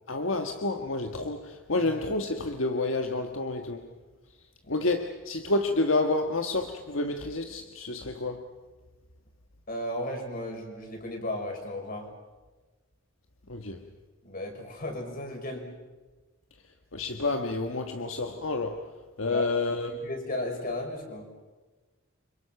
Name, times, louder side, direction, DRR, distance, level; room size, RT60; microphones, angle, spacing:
voice 1, 0.1-3.9 4.7-8.5 13.5-13.8 16.9-18.9 19.2-20.0, left 2 dB, 75° left, 1.5 m, -29 dB
voice 2, 9.7-12.1 14.2-15.7 19.3-19.5 19.8-21.3, left 1 dB, 45° left, 6.1 m, -35 dB
29.5 x 26.0 x 5.9 m
head